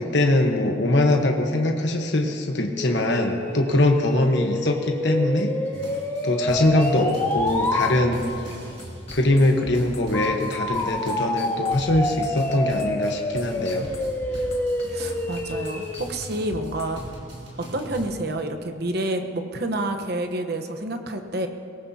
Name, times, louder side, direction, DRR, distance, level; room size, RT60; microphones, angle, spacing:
voice 1, 0.0-5.5 6.2-8.2 9.1-13.9, left 1 dB, 55° left, 2 dB, 1.2 m, -22 dB
sound 1, 2.7-7.9 10.1-16.0, left 1 dB, 10° left, 0.9 m, -28 dB
sound 2, 5.4-6.2 6.5-16.9, left 2 dB, 30° left, 1.5 m, -42 dB
sound 3, 5.7-18.1, equal, 25° right, 2.8 m, -41 dB
voice 2, 14.9-17.0 17.6-21.5, right 1 dB, 50° right, 6 dB, 1.0 m, -29 dB
22.0 x 18.0 x 2.8 m, 2.5 s
head